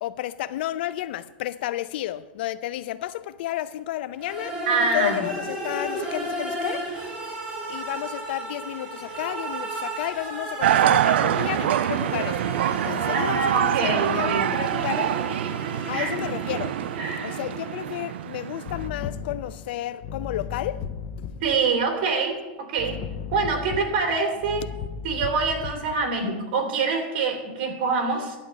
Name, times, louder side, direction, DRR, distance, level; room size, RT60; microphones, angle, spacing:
voice 1, 0.0-4.6 4.9-6.9 7.7-12.4 12.8-15.1 15.9-16.8 17.2-20.9 28.1-28.3, left 13 dB, 70° left, 0.5 m, -32 dB
sound 1, 4.2-18.0, right 1 dB, 20° right, 3.4 m, -34 dB
voice 2, 4.7-5.2 13.1-14.5 15.9-16.1 17.0-17.3 21.4-23.0 23.3-24.7 25.0-28.4, right 4 dB, 60° right, 2.8 m, -25 dB
sound 2, 10.6-18.9, right 11 dB, 90° right, 0.4 m, -25 dB
sound 3, 18.7-21.6 22.8-26.0, left 7 dB, 45° left, 0.9 m, -35 dB
11.0 x 5.2 x 8.0 m
supercardioid pair, 145°, 6 cm